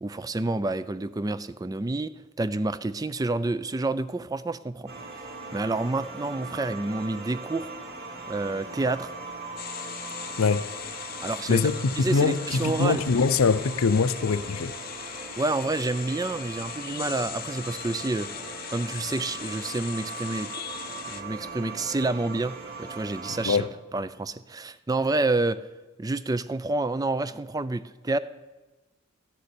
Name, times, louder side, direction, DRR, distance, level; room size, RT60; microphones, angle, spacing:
voice 1, 0.0-4.9 5.5-7.7 8.3-9.1 11.2-11.6 12.0-13.0 15.4-18.3 18.7-20.5 21.1-23.6 23.9-25.6 26.0-28.2, right 2 dB, 15° right, 0.3 m, -28 dB
sound 1, 4.9-23.6, right 3 dB, 50° right, 2.4 m, -40 dB
sound 2, 9.6-21.2, left 10 dB, 45° left, 0.7 m, -39 dB
voice 2, 10.4-10.7 11.5-14.7 23.4-23.7, left 4 dB, 80° left, 0.6 m, -23 dB
13.0 x 6.8 x 9.6 m
head